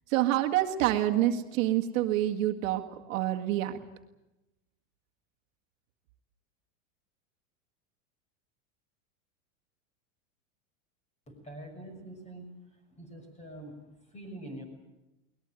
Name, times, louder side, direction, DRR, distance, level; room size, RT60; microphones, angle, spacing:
voice 1, 0.1-3.8, right 13 dB, 70° right, 4 dB, 1.9 m, -27 dB
voice 2, 11.3-12.5 12.9-13.8 14.1-14.6, right 1 dB, 15° left, 6 dB, 6.3 m, -44 dB
22.0 x 20.0 x 9.0 m, 0.98 s
supercardioid pair, 145°, 40 cm